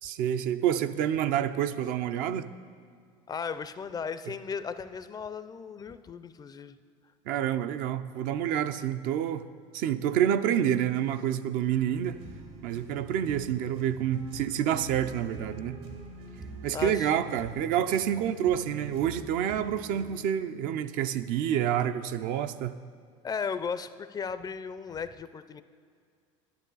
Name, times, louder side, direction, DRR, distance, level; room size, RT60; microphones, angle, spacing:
voice 1, 0.0-2.5 7.3-9.5 9.7-12.2 12.6-15.8 16.6-22.8, right 10 dB, 60° right, 10 dB, 0.5 m, -28 dB
voice 2, 3.3-6.8 16.7-17.2 23.2-25.6, left 6 dB, 25° left, 13 dB, 0.4 m, -36 dB
sound 1, 12.0-20.1, right 2 dB, 80° right, 1.9 m, -44 dB
11.5 x 9.9 x 4.0 m, 2.1 s
supercardioid pair, 95°, 16 cm